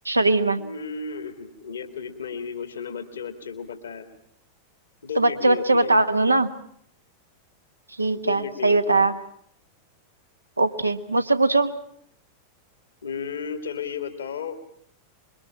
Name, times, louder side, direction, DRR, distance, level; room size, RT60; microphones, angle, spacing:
voice 1, 0.0-0.6 5.2-6.5 8.0-9.1 10.6-11.7, right 2 dB, 85° right, 9 dB, 1.3 m, -20 dB
voice 2, 0.6-4.1 5.0-6.0 8.2-9.0 13.0-14.6, left 6 dB, 70° left, 7 dB, 2.2 m, -34 dB
25.5 x 23.0 x 7.3 m, 0.67 s
figure-of-eight pair, 90°, 0 cm